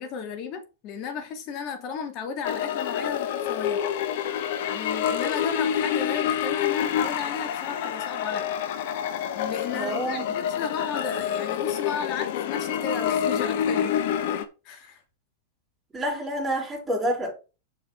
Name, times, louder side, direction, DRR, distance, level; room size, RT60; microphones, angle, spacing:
voice 1, 0.0-3.8 4.6-8.5 9.3-14.0 14.6-15.0, left 6 dB, 45° left, 2.5 m, -34 dB
sound 1, 2.4-14.4, left 9 dB, 60° left, 1.3 m, -27 dB
voice 2, 9.7-10.3 15.9-17.3, right 1 dB, 10° right, 5.3 m, -28 dB
7.0 x 6.0 x 4.6 m
hypercardioid pair, 105°, 0 cm